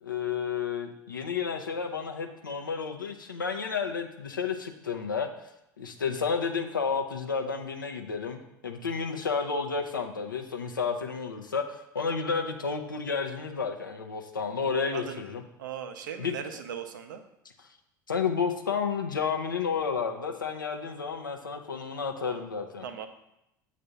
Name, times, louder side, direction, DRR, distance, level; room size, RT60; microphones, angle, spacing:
voice 1, 0.0-5.3 5.8-8.4 8.6-15.4 16.2-16.3 18.1-22.8, left 5 dB, 90° left, 5 dB, 0.5 m, -31 dB
voice 2, 15.6-17.2 22.2-22.4 22.8-23.1, right 8 dB, 75° right, 7 dB, 0.5 m, -38 dB
6.8 x 2.5 x 5.5 m, 0.84 s
figure-of-eight pair, 70°, 10 cm